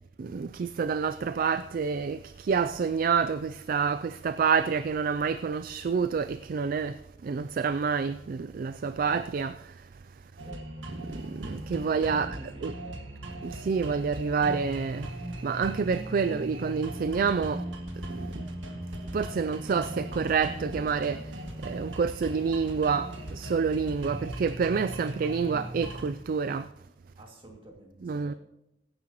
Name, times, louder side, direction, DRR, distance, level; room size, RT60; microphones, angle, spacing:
voice 1, 0.2-7.0 7.2-9.7 11.1-12.7 13.4-15.1 15.4-17.6 18.1-18.4 19.1-26.7 28.0-28.3, right 5 dB, 45° right, 0.3 m, -28 dB
voice 2, 10.4-10.7 12.1-13.1 27.2-28.4, right 1 dB, 30° right, 2.3 m, -50 dB
sound 1, 10.4-26.1, right 1 dB, 85° right, 2.0 m, -38 dB
22.5 x 9.6 x 3.0 m
head